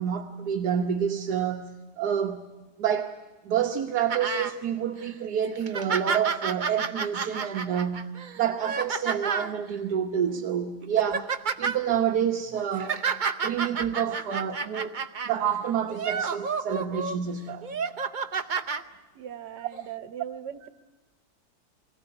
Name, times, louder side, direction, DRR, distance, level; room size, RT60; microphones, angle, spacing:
voice 1, 0.0-1.7 2.0-2.4 2.8-3.1 3.4-8.1 8.4-11.3 11.6-13.0 13.4-15.0 15.2-17.8, right 8 dB, 70° right, 4 dB, 1.5 m, -28 dB
sound 1, 4.1-4.5 5.0-5.1 5.6-9.5 10.3-10.4 10.8-11.8 12.5-15.3 15.9-17.2 17.6-18.8 19.7-19.8, right 5 dB, 40° right, 0.7 m, -30 dB
voice 2, 19.2-20.7, right 9 dB, 85° right, 10 dB, 1.6 m, -39 dB
24.5 x 17.0 x 9.6 m, 1.2 s
omnidirectional pair, 1.8 m